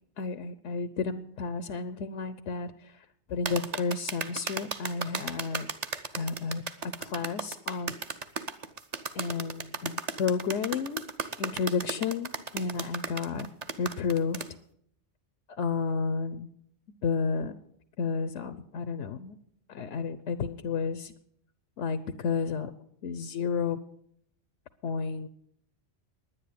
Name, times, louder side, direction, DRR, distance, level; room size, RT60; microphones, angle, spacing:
voice 1, 0.2-2.7 3.3-5.7 6.1-6.6 7.0-8.0 9.1-11.0 11.4-13.5 13.8-14.4 15.6-16.5 17.0-17.5 18.0-19.4 19.7-21.1 21.8-22.7 23.0-23.8 24.8-25.3, left 5 dB, 80° left, 12 dB, 1.0 m, -31 dB
sound 1, 3.5-14.5, right 5 dB, 40° right, 0.8 m, -35 dB
10.5 x 9.9 x 8.4 m, 0.69 s
omnidirectional pair, 1.2 m